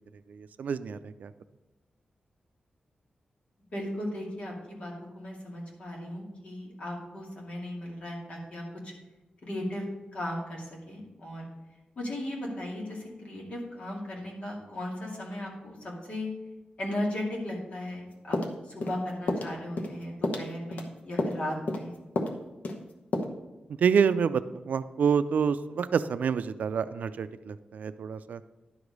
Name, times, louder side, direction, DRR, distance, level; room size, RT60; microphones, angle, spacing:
voice 1, 0.3-1.3 23.8-28.4, right 6 dB, 80° right, 13 dB, 0.4 m, -27 dB
voice 2, 3.7-8.9 9.4-9.8 10.1-11.4 12.0-16.3 16.8-18.4 18.7-22.0, left 1 dB, 50° left, -3 dB, 2.4 m, -36 dB
sound 1, 18.3-19.0 19.3-19.5 19.8-20.0 20.2-20.9 21.2-21.4 21.7-21.9 22.2-22.4 22.6-22.8 23.1-23.2, left 2 dB, 65° left, 0.9 m, -30 dB
11.0 x 4.9 x 5.3 m, 1.1 s
wide cardioid pair, 175°, 3 cm